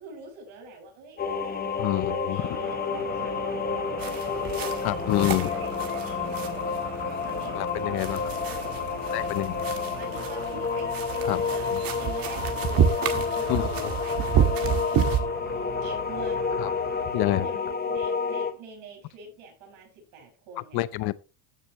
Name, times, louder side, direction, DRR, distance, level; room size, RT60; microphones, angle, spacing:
voice 1, 0.0-4.2 5.3-9.4 10.0-16.6 17.1-20.9, right 2 dB, 65° right, 6.4 m, -45 dB
sound 1, 1.2-18.5, left 5 dB, 20° left, 1.1 m, -30 dB
voice 2, 1.8-2.4 4.8-5.5 7.5-8.2 9.1-9.6 11.3-11.4 13.5-13.9 16.6-16.7 17.1-17.5 20.7-21.1, left 17 dB, 50° left, 0.7 m, -27 dB
sound 2, 2.3-17.1, right 6 dB, 90° right, 6.2 m, -42 dB
sound 3, 4.0-15.2, right 8 dB, 45° right, 1.8 m, -30 dB
15.5 x 6.7 x 3.1 m
cardioid pair, 145°, 50 cm